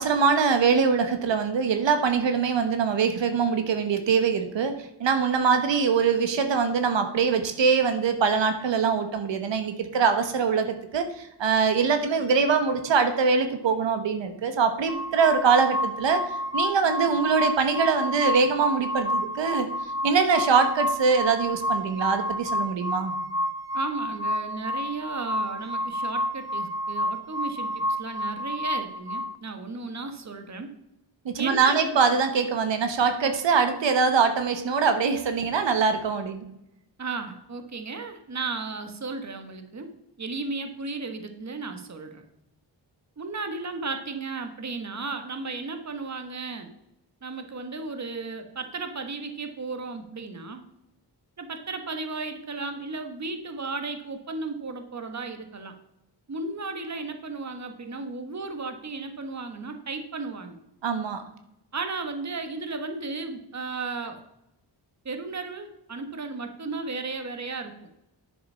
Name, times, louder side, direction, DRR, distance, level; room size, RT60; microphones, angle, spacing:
voice 1, 0.0-16.2 16.5-19.7 20.0-23.1 31.2-36.5 60.8-61.2, right 5 dB, 90° right, 8 dB, 1.2 m, -23 dB
sound 1, 14.9-29.3, equal, 10° right, 0.5 m, -30 dB
voice 2, 23.7-30.7 31.4-32.2 37.0-39.9 40.2-42.2 43.2-46.7 47.2-50.6 51.4-55.7 56.3-60.6 61.7-64.2 65.0-67.9, right 3 dB, 40° right, 7 dB, 1.5 m, -34 dB
10.5 x 7.1 x 5.6 m, 0.84 s
wide cardioid pair, 110°, 43 cm